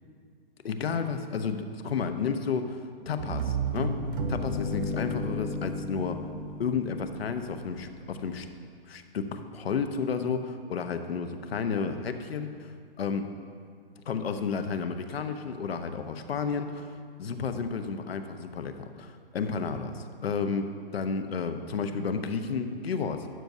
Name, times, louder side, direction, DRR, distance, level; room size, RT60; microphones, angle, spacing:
voice 1, 0.6-2.8 3.1-4.0 4.3-6.2 6.6-8.5 8.9-12.7 13.0-13.3 14.1-16.9 17.2-23.3, left 5 dB, 75° left, 7 dB, 0.9 m, -32 dB
sound 1, 3.2-8.0, right 1 dB, 60° right, 1.0 m, -33 dB
12.5 x 7.9 x 2.7 m, 2.2 s
hypercardioid pair, 160°, 30 cm